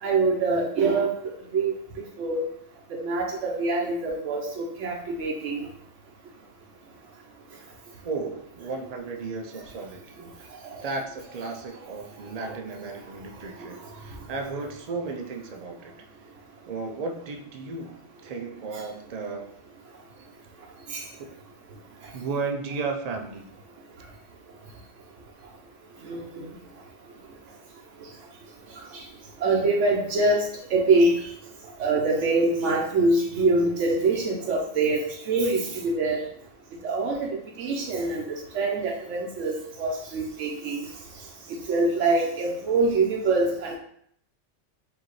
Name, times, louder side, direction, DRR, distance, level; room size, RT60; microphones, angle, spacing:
voice 1, 0.0-1.7 2.2-2.5 2.9-5.7 10.6-10.8 12.4-12.5 18.7-18.8 20.9-21.0 26.0-26.5 28.9-29.0 29.4-31.3 31.8-36.2 36.8-40.9 41.5-43.8, right 3 dB, 85° right, -1 dB, 1.0 m, -25 dB
voice 2, 8.0-15.9 16.7-19.6 21.2-21.4 22.1-23.5, right 4 dB, 60° right, 4 dB, 0.4 m, -34 dB
4.9 x 2.7 x 3.0 m, 0.68 s
omnidirectional pair, 1.2 m